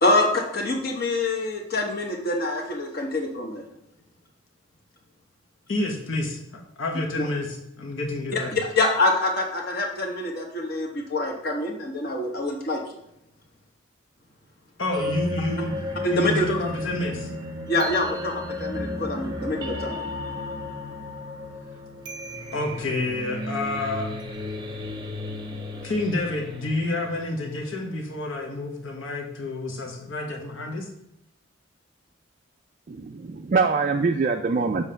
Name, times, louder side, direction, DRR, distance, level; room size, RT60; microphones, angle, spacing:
voice 1, 0.0-3.6 7.2-7.3 8.3-12.8 16.0-16.5 17.7-20.0, left 2 dB, 50° left, 1.1 m, -25 dB
voice 2, 5.7-6.4 6.8-7.5 7.8-8.6 14.8-15.7 16.1-17.3 22.5-24.1 25.8-30.9, left 2 dB, 70° left, 1.2 m, -29 dB
sound 1, 14.9-27.9, left 1 dB, 20° right, 0.7 m, -34 dB
voice 3, 32.9-34.9, right 4 dB, 40° right, 0.3 m, -24 dB
7.0 x 3.2 x 5.6 m
head